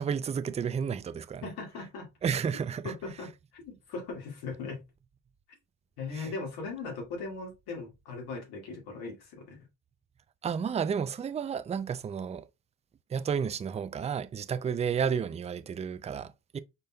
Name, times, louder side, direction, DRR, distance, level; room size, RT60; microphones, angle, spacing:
voice 1, 0.0-1.5 2.2-2.9 6.1-6.3 10.4-12.5 13.1-16.6, right 7 dB, 20° right, 0.3 m, -32 dB
voice 2, 1.4-2.1 2.8-3.3 3.5-4.8 6.0-9.6, left 4 dB, 80° left, 2.1 m, -39 dB
5.2 x 4.2 x 2.2 m
cardioid pair, 90°, 37 cm